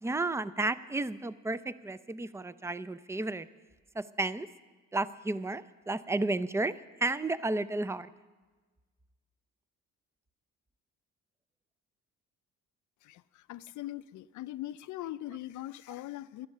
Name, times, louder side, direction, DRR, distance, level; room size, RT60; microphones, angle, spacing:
voice 1, 0.0-3.5 3.9-4.5 4.9-8.1, right 2 dB, 10° right, 0.5 m, -32 dB
voice 2, 13.0-16.5, left 14 dB, 75° left, 0.5 m, -41 dB
13.0 x 11.0 x 6.6 m
cardioid pair, 90°, 30 cm